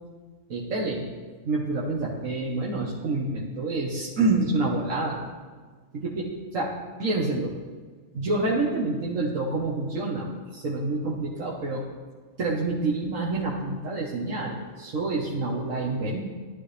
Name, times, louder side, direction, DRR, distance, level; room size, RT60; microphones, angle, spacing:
voice 1, 0.5-1.0 1.5-5.2 5.9-6.7 7.0-7.6 8.1-11.8 12.4-16.2, right 2 dB, 75° right, -4 dB, 1.8 m, -27 dB
16.0 x 12.0 x 3.4 m, 1.5 s
omnidirectional pair, 1.4 m